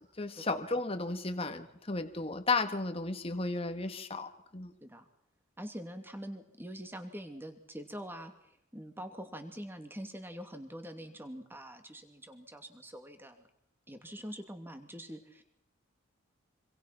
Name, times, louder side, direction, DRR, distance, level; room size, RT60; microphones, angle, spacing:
voice 1, 0.2-4.7, left 3 dB, 30° left, 7 dB, 1.7 m, -34 dB
voice 2, 5.6-13.4 13.9-15.4, equal, 10° right, 6 dB, 2.6 m, -44 dB
26.5 x 26.0 x 6.0 m, 0.76 s
head